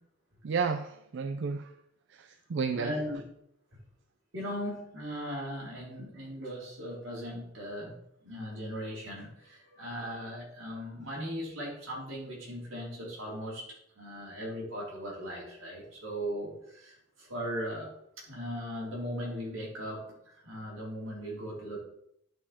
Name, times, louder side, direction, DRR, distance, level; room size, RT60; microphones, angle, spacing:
voice 1, 0.4-1.7 2.1-3.0, right 5 dB, 65° right, 9 dB, 0.5 m, -32 dB
voice 2, 2.7-3.2 4.3-7.9 8.2-17.9 18.3-21.8, equal, 85° right, -4 dB, 3.7 m, -38 dB
10.5 x 4.8 x 4.3 m, 0.74 s
head